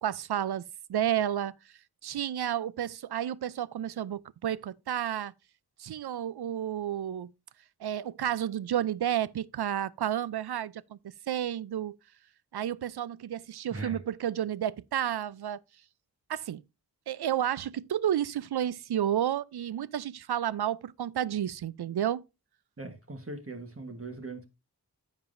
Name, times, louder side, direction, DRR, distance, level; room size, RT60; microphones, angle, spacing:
voice 1, 0.0-1.6 2.0-5.3 5.8-7.3 7.8-11.0 11.3-11.9 12.5-15.6 16.3-16.6 17.1-22.2, right 10 dB, 80° right, 0.5 m, -31 dB
voice 2, 22.8-24.4, right 3 dB, 35° right, 1.3 m, -40 dB
10.5 x 7.5 x 2.6 m
wide cardioid pair, 90°, 38 cm